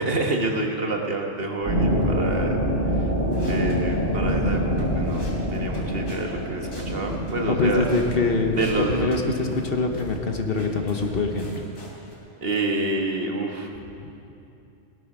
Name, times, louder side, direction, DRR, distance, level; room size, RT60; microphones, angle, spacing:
voice 1, 0.0-2.6 2.9-3.1 3.4-7.9 8.5-9.1 12.4-13.7, right 2 dB, 50° right, 2 dB, 1.5 m, -28 dB
sound 1, 1.6-11.5, equal, 75° right, 3.4 m, -27 dB
sound 2, 3.2-6.2 6.6-8.1 8.5-9.7 9.9-10.2 10.5-12.2, left 1 dB, 90° left, 3.6 m, -47 dB
voice 2, 7.5-8.6 8.9-11.6, left 3 dB, 50° left, 4 dB, 1.2 m, -24 dB
18.5 x 11.0 x 6.1 m, 2.9 s
omnidirectional pair, 1.3 m